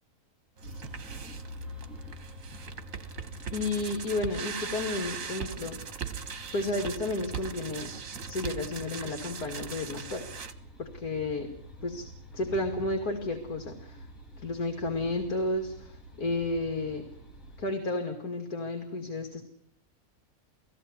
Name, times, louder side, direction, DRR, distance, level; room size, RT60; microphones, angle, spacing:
sound 1, 0.6-17.6, equal, 60° left, 4.7 m, -47 dB
sound 2, 0.6-10.5, right 6 dB, 65° right, 1.7 m, -40 dB
voice 1, 3.5-6.1 6.5-7.9 8.3-10.3 10.8-11.5 11.8-12.1 12.3-14.1 14.4-17.1 17.6-19.4, left 2 dB, 90° left, 4 dB, 3.0 m, -32 dB
19.5 x 16.0 x 9.8 m, 0.68 s
omnidirectional pair, 1.6 m